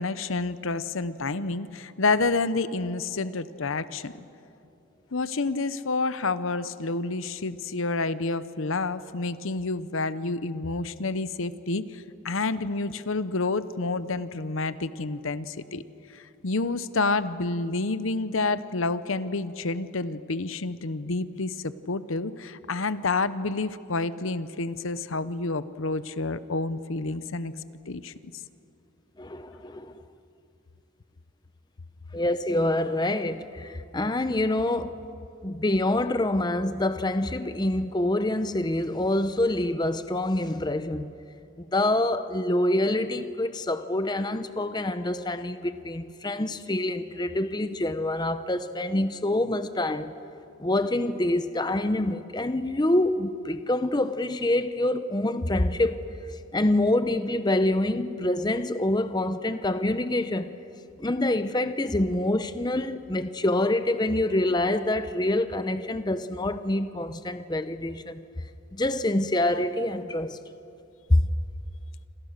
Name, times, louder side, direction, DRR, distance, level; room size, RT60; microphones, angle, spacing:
voice 1, 0.0-4.2 5.1-15.8 16.1-27.5 27.9-28.3, left 3 dB, 70° left, 0.8 m, -29 dB
voice 2, 29.2-30.0 32.1-35.0 35.4-41.1 41.6-50.1 50.6-56.0 56.3-60.6 61.0-68.2 68.7-70.4 71.1-71.2, left 1 dB, 20° left, 0.6 m, -26 dB
28.0 x 27.0 x 6.6 m
head